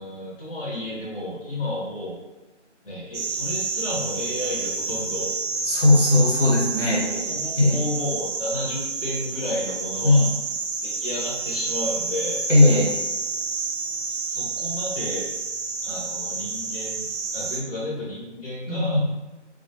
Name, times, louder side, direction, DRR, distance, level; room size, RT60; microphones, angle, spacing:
voice 1, 0.0-2.2 2.8-5.3 7.0-10.3 10.8-12.4 14.3-15.3 15.8-17.0 17.3-19.0, left 1 dB, 50° left, -7 dB, 0.8 m, -32 dB
sound 1, 3.1-17.6, right 4 dB, 90° right, 0.5 m, -29 dB
voice 2, 5.7-7.0 7.6-7.8 10.0-10.3 12.5-12.9 18.7-19.0, left 2 dB, 75° left, -3 dB, 0.9 m, -18 dB
2.2 x 2.1 x 2.9 m, 1.1 s
figure-of-eight pair, 175°, 36 cm